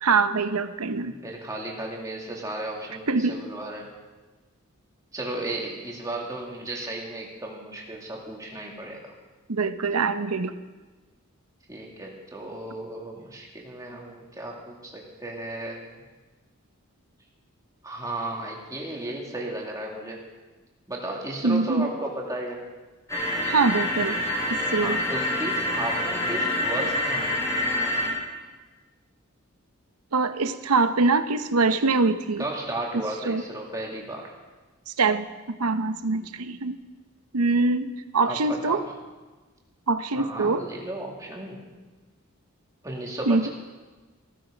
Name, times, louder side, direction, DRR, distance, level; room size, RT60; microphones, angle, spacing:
voice 1, 0.0-1.2 3.1-3.4 9.5-10.5 21.4-21.9 23.4-24.2 24.5-25.0 30.1-32.4 33.2-33.4 34.9-36.8 37.3-38.8 39.9-40.6 43.3-43.5, right 3 dB, 90° right, 11 dB, 0.8 m, -24 dB
voice 2, 1.0-3.9 5.1-9.1 11.7-15.9 17.8-20.2 20.9-22.6 24.8-27.6 32.4-34.3 38.3-38.8 40.1-41.6 42.8-43.5, right 1 dB, 15° right, -2 dB, 2.5 m, -34 dB
sound 1, 23.1-28.1, left 1 dB, 15° left, 4.4 m, -26 dB
15.5 x 14.0 x 5.2 m, 1.3 s
head